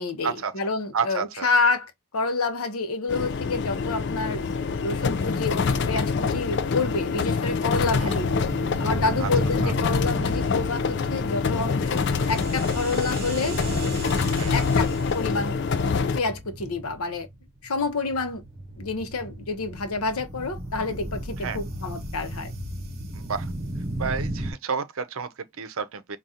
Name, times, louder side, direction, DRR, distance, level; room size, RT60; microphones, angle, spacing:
voice 1, 0.0-4.4 4.8-8.4 8.8-13.6 14.5-15.6 16.1-17.3 17.6-18.4 18.8-22.5, left 3 dB, 80° left, 0.8 m, -28 dB
voice 2, 0.9-1.5 8.0-8.2 9.2-9.3 9.6-9.7 14.4-14.5 21.4-21.6 23.1-23.5 24.0-26.2, right 6 dB, 70° right, 0.6 m, -30 dB
sound 1, 3.1-16.2, left 5 dB, 50° left, 0.4 m, -25 dB
sound 2, 7.7-24.5, right 1 dB, 45° right, 0.8 m, -35 dB
4.8 x 2.3 x 2.7 m
head